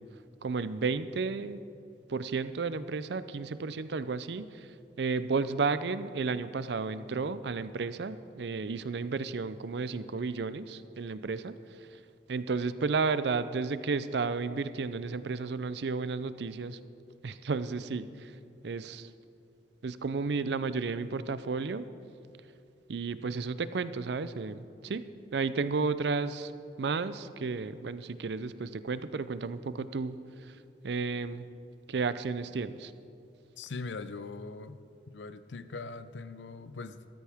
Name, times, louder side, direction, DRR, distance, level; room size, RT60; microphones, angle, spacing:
voice 1, 0.4-1.6 2.1-4.5 5.0-11.5 12.3-16.8 17.2-18.1 18.6-19.1 19.8-21.9 22.9-24.6 24.8-25.0 25.3-26.5 26.8-30.2 30.8-31.4 31.9-32.9, right 4 dB, 65° right, 14 dB, 0.5 m, -32 dB
voice 2, 33.6-34.8 35.1-37.1, left 3 dB, 80° left, 12 dB, 0.6 m, -41 dB
13.5 x 13.5 x 3.5 m, 2.6 s
head